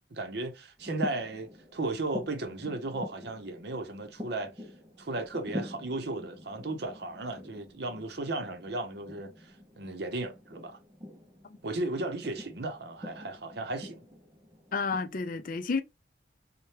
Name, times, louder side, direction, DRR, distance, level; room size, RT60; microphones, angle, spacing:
voice 1, 0.0-4.5 5.0-10.8 11.6-14.0, right 2 dB, 60° right, 0.7 m, -35 dB
sound 1, 0.8-15.0, left 1 dB, 20° right, 0.5 m, -45 dB
voice 2, 14.7-15.8, left 4 dB, 45° left, 0.4 m, -30 dB
4.2 x 2.2 x 3.2 m
head